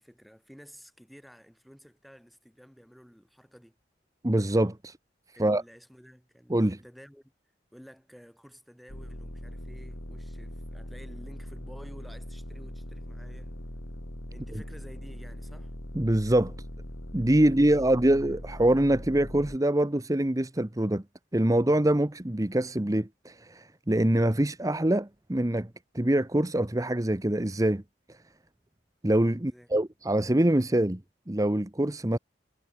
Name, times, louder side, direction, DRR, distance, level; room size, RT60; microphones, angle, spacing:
voice 1, 0.0-3.8 5.4-7.3 7.7-13.6 14.3-15.7 17.4-18.2 29.4-29.7, equal, ahead, 5.9 m, -52 dB
voice 2, 4.2-5.0 5.4-5.6 6.5-6.8 15.9-16.5 17.1-21.0 21.3-25.7 25.9-27.8 28.1-28.2 29.0-31.0 31.3-32.2, right 1 dB, 20° right, 0.9 m, -24 dB
sound 1, 8.9-19.6, equal, 75° left, 5.0 m, -41 dB
head